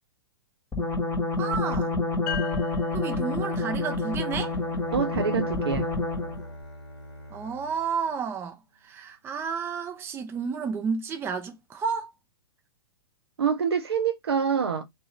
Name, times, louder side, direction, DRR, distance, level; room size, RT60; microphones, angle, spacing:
sound 1, 0.7-6.5, left 3 dB, 15° left, 1.1 m, -28 dB
voice 1, 1.4-1.9 2.9-4.6 7.3-12.1, right 6 dB, 15° right, 0.6 m, -31 dB
sound 2, 2.3-5.7, left 8 dB, 40° left, 0.5 m, -40 dB
Bowed string instrument, 4.0-8.9, equal, 90° left, 1.2 m, -45 dB
voice 2, 4.9-5.9 13.4-14.8, right 6 dB, 70° right, 0.8 m, -26 dB
2.7 x 2.7 x 3.1 m
figure-of-eight pair, 110°, 14 cm